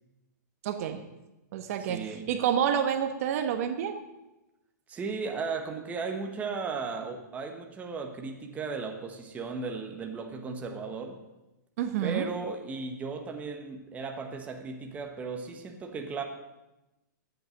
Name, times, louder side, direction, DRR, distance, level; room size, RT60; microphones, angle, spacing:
voice 1, 0.6-1.1 1.5-4.0 11.8-12.3, right 9 dB, 50° right, 8 dB, 1.1 m, -29 dB
voice 2, 1.9-2.3 4.9-11.2 12.0-16.2, right 4 dB, 15° right, 4 dB, 1.2 m, -36 dB
12.0 x 8.4 x 6.5 m, 0.99 s
hypercardioid pair, 145°, 10 cm